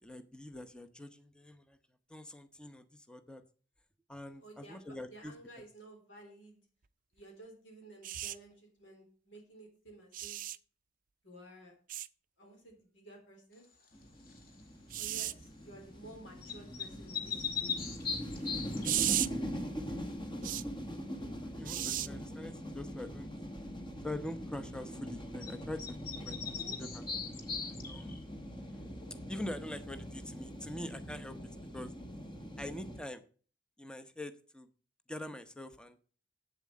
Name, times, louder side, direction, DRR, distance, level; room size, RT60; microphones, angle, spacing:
voice 1, 0.0-1.8 2.1-3.4 4.1-5.3 19.8-20.6 21.4-23.3 24.0-26.0 26.2-27.0 27.6-28.2 29.3-31.4 31.7-31.9 32.6-33.3 33.8-34.7 35.1-36.0, left 1 dB, 5° left, 10 dB, 0.8 m, -44 dB
voice 2, 4.4-4.8 5.1-6.6 7.1-10.4 11.2-11.7 12.4-13.6 14.9-17.9 26.3-26.8, right 1 dB, 75° left, 1 dB, 3.7 m, -53 dB
sound 1, 8.0-8.4 10.1-10.6 11.9-12.1 14.9-15.3 18.8-19.3 20.4-20.6 21.7-22.1 23.6-23.7, right 13 dB, 45° right, 0.5 m, -34 dB
sound 2, 13.9-33.0, equal, 25° left, 1.3 m, -43 dB
sound 3, 14.3-14.6 16.4-19.0 25.4-25.5 25.8-28.2, left 6 dB, 50° left, 1.9 m, -39 dB
8.4 x 7.5 x 7.4 m, 0.40 s
head